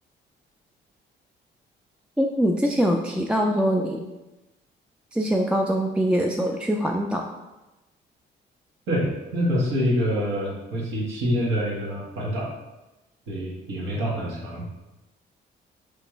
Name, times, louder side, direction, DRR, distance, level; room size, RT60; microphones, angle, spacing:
voice 1, 2.2-4.0 5.1-7.3, equal, 5° right, 1 dB, 0.3 m, -23 dB
voice 2, 8.9-12.5 13.3-14.7, equal, 85° right, -4 dB, 1.5 m, -26 dB
5.1 x 3.3 x 3.0 m, 1.0 s
cardioid pair, 90°, 20 cm